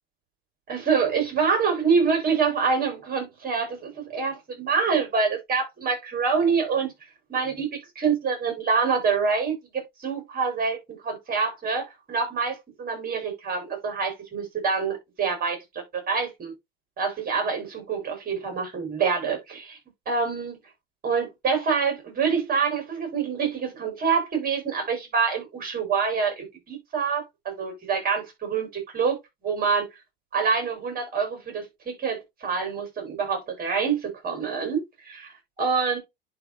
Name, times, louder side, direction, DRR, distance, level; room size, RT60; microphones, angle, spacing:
voice 1, 0.7-6.9 7.3-7.7 7.9-16.5 17.0-19.8 20.1-20.6 21.0-29.9 30.3-36.0, right 5 dB, 30° right, 4.8 m, -26 dB
11.0 x 3.9 x 2.7 m
hypercardioid pair, 100°, 29 cm